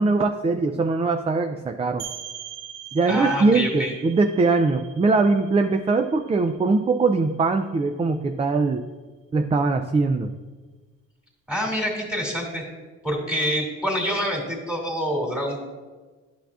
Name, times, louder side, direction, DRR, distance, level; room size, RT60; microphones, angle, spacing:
voice 1, 0.0-2.0 2.9-8.8 9.3-10.3, right 3 dB, 20° right, 6 dB, 0.4 m, -21 dB
sound 1, 2.0-7.5, right 10 dB, 80° right, 0.8 m, -42 dB
voice 2, 3.1-3.9 11.5-12.6 13.0-15.7, equal, 5° right, -2 dB, 2.3 m, -26 dB
11.5 x 5.7 x 2.4 m, 1.3 s
cardioid pair, 90°, 30 cm